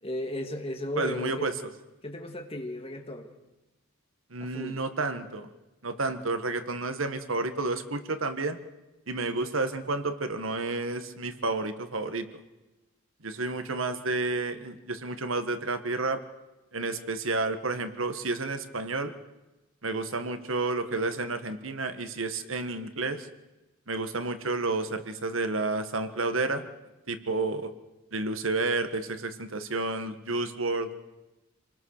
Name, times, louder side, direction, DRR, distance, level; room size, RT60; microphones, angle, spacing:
voice 1, 0.0-1.5 2.0-3.3 4.4-4.8, left 1 dB, 30° left, 4 dB, 2.3 m, -35 dB
voice 2, 1.0-1.5 4.3-5.5 5.8-8.6 9.1-12.3 13.2-16.2 16.7-19.1 19.8-23.3 23.9-26.7 27.1-27.7 28.1-30.9, right 3 dB, 85° right, 9 dB, 1.7 m, -30 dB
27.5 x 20.0 x 6.7 m, 1.0 s
head